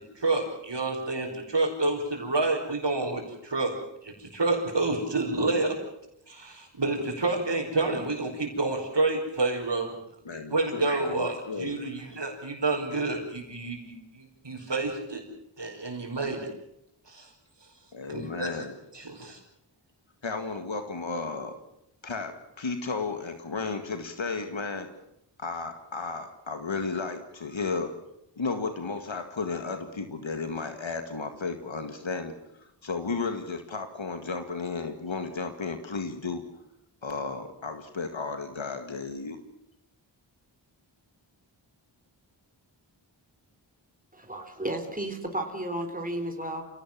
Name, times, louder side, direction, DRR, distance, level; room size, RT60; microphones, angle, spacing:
voice 1, 0.2-3.8 4.0-5.7 6.3-10.0 10.5-15.2 15.6-16.5 17.1-17.3 18.1-18.6 18.9-19.4, right 3 dB, 65° right, -4 dB, 5.3 m, -29 dB
voice 2, 10.3-11.8 17.9-18.7 20.2-21.5 22.0-24.9 25.4-27.9 28.4-32.3 32.6-36.5 37.0-39.4, left 4 dB, 75° left, 7 dB, 2.1 m, -33 dB
voice 3, 44.1-46.6, right 1 dB, 20° right, 4 dB, 4.0 m, -33 dB
28.0 x 18.0 x 7.5 m, 0.81 s
wide cardioid pair, 50°, 46 cm